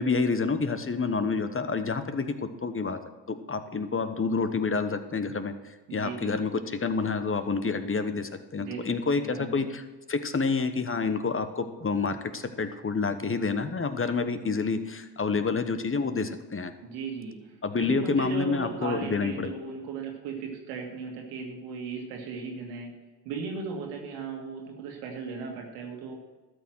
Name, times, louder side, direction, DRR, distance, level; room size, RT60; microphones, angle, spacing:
voice 1, 0.0-3.0 3.3-16.7 17.6-19.5, left 4 dB, 25° left, 10 dB, 1.1 m, -28 dB
voice 2, 5.9-6.4 8.6-9.6 16.8-22.9 23.3-26.2, right 5 dB, 85° right, 1 dB, 1.9 m, -37 dB
12.5 x 6.3 x 6.2 m, 1.3 s
hypercardioid pair, 50°, 47 cm